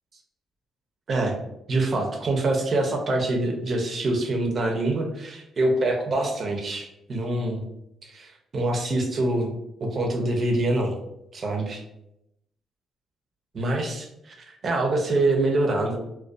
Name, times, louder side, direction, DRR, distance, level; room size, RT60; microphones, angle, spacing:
voice 1, 1.7-7.6 8.1-9.5 9.8-10.9 11.3-11.8 13.5-14.3 14.6-16.0, right 2 dB, 45° right, 2 dB, 0.5 m, -25 dB
2.5 x 2.2 x 2.3 m, 0.83 s
cardioid pair, 90°, 0 cm